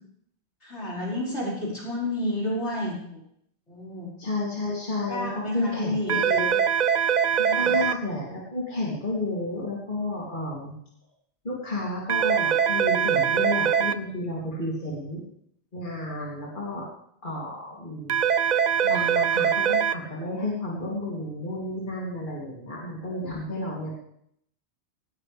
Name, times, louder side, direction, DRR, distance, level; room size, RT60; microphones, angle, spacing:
voice 1, 0.6-3.2 3.7-4.1 5.1-6.2 7.4-7.7, left 1 dB, 80° left, -5 dB, 5.5 m, -31 dB
voice 2, 4.2-6.6 7.4-10.7 11.4-15.2 15.7-16.8 17.2-18.1 18.8-24.0, left 2 dB, 45° left, -5 dB, 3.2 m, -31 dB
sound 1, 6.1-7.9 12.1-13.9 18.1-19.9, right 8 dB, 50° right, 0.7 m, -22 dB
18.5 x 15.5 x 3.5 m, 0.71 s
omnidirectional pair, 1.1 m